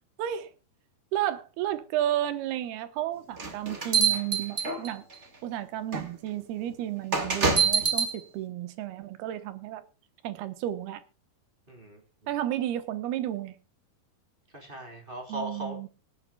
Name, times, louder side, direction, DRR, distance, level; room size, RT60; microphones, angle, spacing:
voice 1, 0.2-0.5 1.1-5.0 5.4-9.8 10.2-11.0 12.3-13.5 15.3-15.9, right 12 dB, 85° right, 3.2 m, -32 dB
sound 1, 3.4-5.1 5.9-6.1 7.1-8.1, right 5 dB, 30° right, 1.3 m, -25 dB
voice 2, 11.7-12.0 14.5-15.9, right 1 dB, 15° right, 3.4 m, -38 dB
25.0 x 8.9 x 2.3 m
omnidirectional pair, 4.4 m